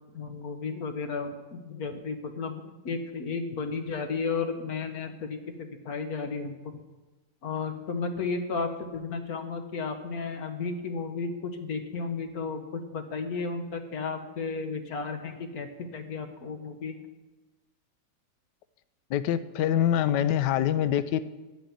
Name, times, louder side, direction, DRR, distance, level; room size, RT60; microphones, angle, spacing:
voice 1, 0.1-6.8 7.4-17.0, left 4 dB, 60° left, 7 dB, 1.5 m, -33 dB
voice 2, 19.1-21.2, left 10 dB, 75° left, 14 dB, 1.2 m, -25 dB
9.8 x 8.1 x 8.2 m, 1.2 s
omnidirectional pair, 2.0 m